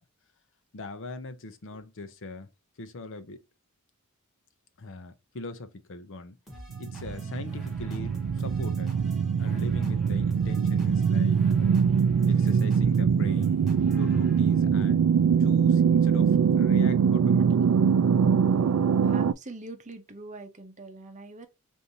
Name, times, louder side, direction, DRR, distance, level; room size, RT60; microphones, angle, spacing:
voice 1, 0.7-2.5 2.8-3.4 4.8-6.4 6.8-8.9 9.4-11.7 12.3-13.6 14.0-15.1 15.4-17.9, left 2 dB, 60° left, 0.6 m, -41 dB
sound 1, 6.5-14.7, equal, ahead, 1.7 m, -46 dB
sound 2, 6.7-19.3, right 6 dB, 75° right, 0.3 m, -23 dB
voice 2, 19.0-21.5, right 2 dB, 35° right, 0.7 m, -43 dB
4.9 x 2.6 x 2.7 m
head